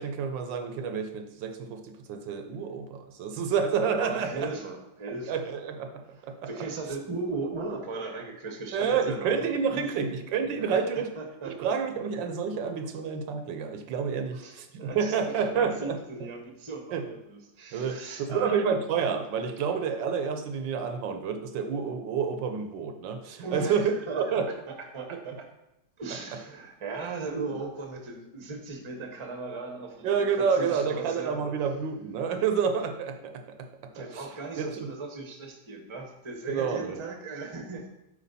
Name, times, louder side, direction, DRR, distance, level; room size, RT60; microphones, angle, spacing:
voice 1, 0.0-4.5 5.3-6.5 8.7-11.1 11.4-16.0 16.9-17.1 17.7-23.9 24.2-24.5 27.5-27.6 30.0-34.3 34.6-34.9 36.5-37.0, right 6 dB, 75° right, 7 dB, 1.4 m, -29 dB
voice 2, 4.0-5.4 6.4-10.1 10.6-10.8 11.1-11.5 11.9-12.0 14.3-15.1 15.5-18.6 23.4-24.4 24.9-25.4 26.0-31.4 33.9-37.9, right 3 dB, 25° right, 3 dB, 0.7 m, -37 dB
8.3 x 4.7 x 4.2 m, 0.87 s
omnidirectional pair, 2.1 m